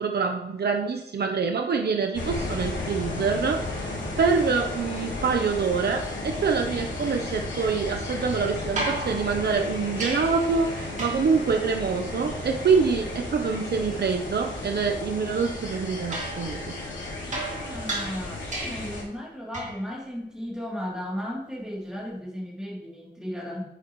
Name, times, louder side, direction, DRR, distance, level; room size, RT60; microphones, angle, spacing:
voice 1, 0.0-16.6, right 5 dB, 60° right, 4 dB, 0.9 m, -25 dB
sound 1, 2.1-19.0, left 2 dB, 85° left, 2.9 m, -34 dB
sound 2, 8.8-10.5 11.0-11.4 16.1-19.0 19.5-19.9 21.9-22.0, right 2 dB, 40° right, 2.5 m, -34 dB
voice 2, 17.3-23.6, equal, 5° right, -4 dB, 3.1 m, -35 dB
9.7 x 9.1 x 3.2 m, 0.83 s
wide cardioid pair, 140°, 19 cm